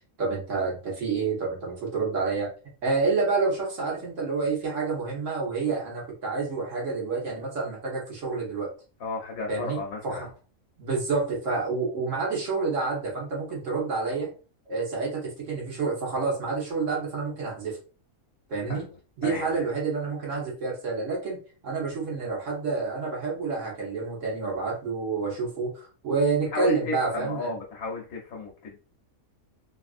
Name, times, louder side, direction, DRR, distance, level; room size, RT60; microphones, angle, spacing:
voice 1, 0.2-2.5 2.8-8.7 9.5-10.3 10.8-14.3 14.7-17.8 18.5-18.9 19.2-27.5, right 4 dB, 65° right, -2 dB, 1.3 m, -28 dB
voice 2, 9.0-10.3 18.7-19.0 19.2-19.6 26.5-28.8, left 3 dB, 85° left, 0 dB, 1.2 m, -34 dB
3.1 x 2.4 x 2.4 m, 0.36 s
omnidirectional pair, 1.5 m